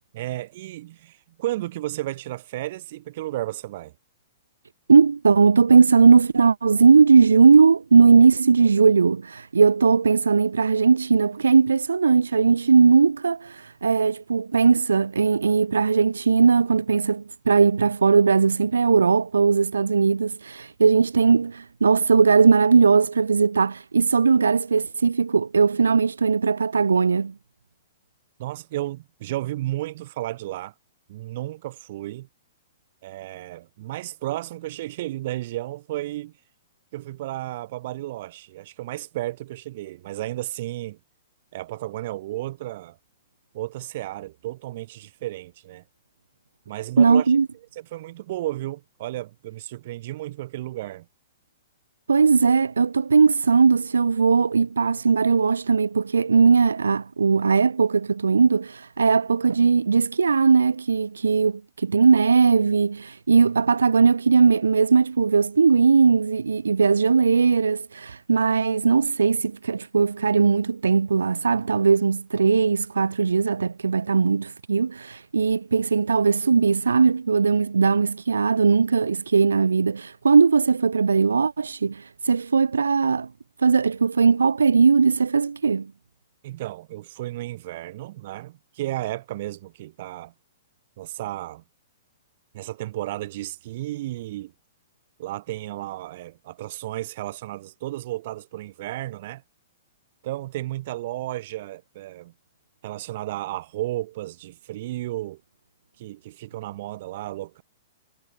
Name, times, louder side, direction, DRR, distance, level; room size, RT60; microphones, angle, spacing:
voice 1, 0.1-3.9 28.4-30.7 31.1-32.3 33.0-36.3 36.9-41.0 41.5-43.0 43.5-45.8 46.7-47.2 47.8-51.1 86.4-90.3 91.0-91.6 92.5-94.5 95.2-99.4 100.2-102.3 102.8-105.4 106.0-107.6, right 15 dB, 50° right, 5.6 m, -33 dB
voice 2, 4.9-27.3 47.0-47.5 52.1-83.3 83.6-85.9, right 5 dB, 75° right, 3.0 m, -19 dB
figure-of-eight pair, 115°, 0 cm